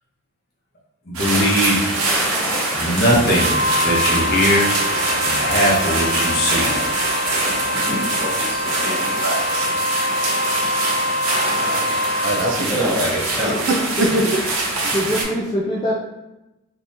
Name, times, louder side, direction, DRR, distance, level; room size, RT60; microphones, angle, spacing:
voice 1, 1.1-2.1 2.7-4.7 5.2-6.7, equal, 45° left, -4 dB, 0.8 m, -20 dB
sound 1, 1.1-15.2, right 2 dB, 90° right, 0.8 m, -23 dB
Wind instrument woodwind instrument, 3.3-12.6, left 1 dB, 90° left, 0.8 m, -25 dB
voice 2, 7.7-9.3 11.6-11.7 12.6-13.5, left 1 dB, 20° right, -9 dB, 1.4 m, -27 dB
voice 3, 9.2-9.7 10.5-11.7 12.2-12.9 14.0-14.3 14.8-14.9, right 2 dB, 60° right, 2 dB, 0.4 m, -26 dB
voice 4, 12.4-12.9 13.5-14.3 14.9-15.9, equal, 20° left, -5 dB, 0.3 m, -25 dB
3.6 x 2.7 x 2.6 m, 0.98 s
head